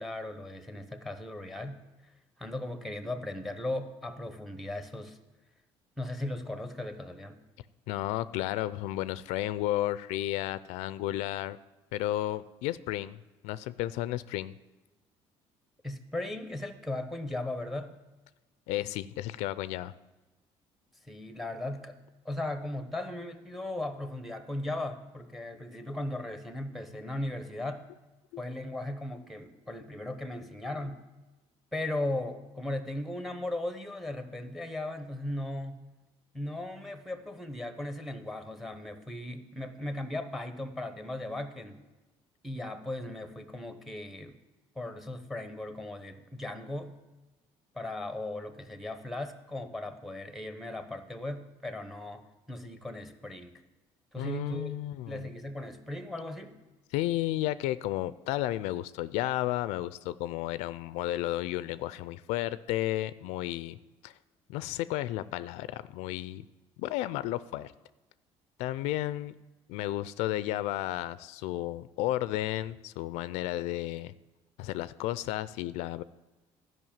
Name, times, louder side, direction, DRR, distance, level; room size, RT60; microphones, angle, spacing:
voice 1, 0.0-1.8 2.4-5.2 6.0-7.4 15.8-17.9 21.0-22.0 22.2-27.8 28.4-31.0 31.7-35.8 36.3-41.8 42.4-44.4 44.8-46.9 47.7-53.6 54.1-54.7 55.1-56.6, left 1 dB, ahead, 9 dB, 0.9 m, -37 dB
voice 2, 7.9-11.6 11.9-13.2 13.4-14.6 18.7-19.9 28.3-28.4 54.2-55.3 56.9-64.1 64.5-66.4 66.8-67.7 68.6-69.4 69.7-74.1 74.6-76.0, left 15 dB, 85° left, 16 dB, 0.4 m, -32 dB
12.5 x 5.4 x 7.2 m, 1.1 s
cardioid pair, 125°, 11 cm